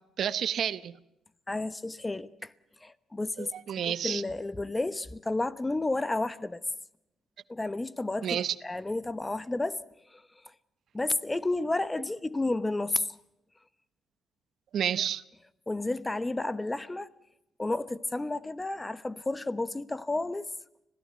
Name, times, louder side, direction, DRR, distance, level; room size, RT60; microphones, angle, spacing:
voice 1, 0.2-0.9 3.4-4.2 8.2-8.5 14.7-15.2, right 9 dB, 65° right, 0.9 m, -30 dB
voice 2, 1.5-2.5 2.8-3.5 3.8-6.6 7.5-9.8 10.1-10.2 10.9-13.1 15.7-17.1 17.6-20.5, left 2 dB, 15° left, 1.0 m, -31 dB
26.0 x 17.0 x 8.1 m
cardioid pair, 90°, 0 cm